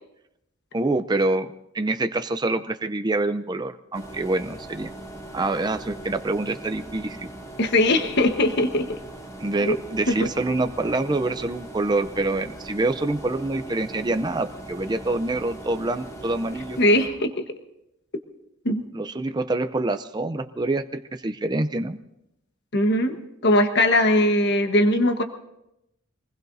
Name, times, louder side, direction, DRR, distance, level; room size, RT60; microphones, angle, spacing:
voice 1, 0.7-4.9 5.3-7.3 9.4-16.8 18.9-22.0, right 2 dB, 20° right, 8 dB, 0.5 m, -26 dB
sound 1, 3.9-17.1, right 1 dB, 15° left, 3.3 m, -40 dB
voice 2, 7.6-9.0 9.6-9.8 10.1-10.3 16.8-17.4 18.6-18.8 22.7-23.2 23.4-25.2, left 1 dB, 55° left, 6 dB, 1.3 m, -20 dB
25.5 x 20.0 x 2.7 m, 0.85 s
head